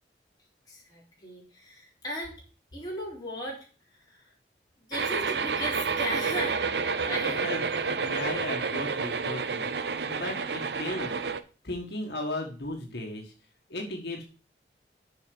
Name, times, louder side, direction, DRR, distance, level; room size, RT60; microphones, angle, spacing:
voice 1, 0.7-2.4 2.7-4.3 4.8-7.4, left 1 dB, 20° left, -4 dB, 4.0 m, -37 dB
sound 1, 4.9-11.4, right 5 dB, 75° right, 0.7 m, -29 dB
voice 2, 7.1-7.6 7.9-11.2 11.6-13.3 13.7-14.2, left 1 dB, 70° left, 0 dB, 1.7 m, -36 dB
6.8 x 5.8 x 7.0 m, 0.37 s
head